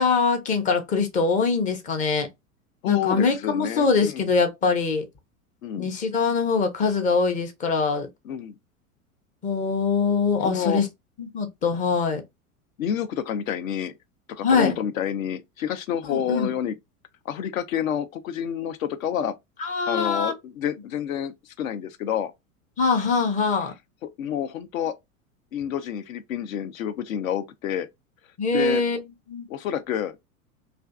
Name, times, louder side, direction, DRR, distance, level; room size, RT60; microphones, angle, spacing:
voice 1, 0.0-2.3 2.9-5.0 5.8-8.1 9.4-10.9 11.2-12.2 14.4-14.8 16.0-16.5 19.6-20.3 22.8-23.7 28.4-29.0 29.3-29.5, left 4 dB, 20° left, 0.4 m, -23 dB
voice 2, 2.8-4.3 5.6-5.9 8.3-8.5 10.4-10.8 12.8-13.9 14.3-16.8 17.3-19.3 19.9-22.3 24.0-24.9 25.5-27.9 28.5-28.8 29.5-30.1, left 9 dB, 70° left, 0.5 m, -29 dB
2.5 x 2.4 x 2.3 m
figure-of-eight pair, 90°, 43 cm